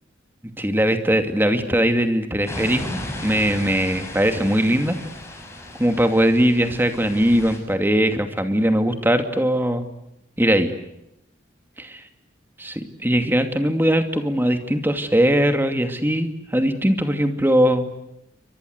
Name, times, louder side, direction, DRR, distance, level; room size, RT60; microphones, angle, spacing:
voice 1, 0.6-5.0 5.8-9.8 10.4-10.7 12.6-17.9, equal, 10° right, 7 dB, 2.6 m, -20 dB
sound 1, 2.5-7.6, left 1 dB, 15° left, 6.7 m, -35 dB
29.5 x 24.5 x 8.2 m, 0.83 s
head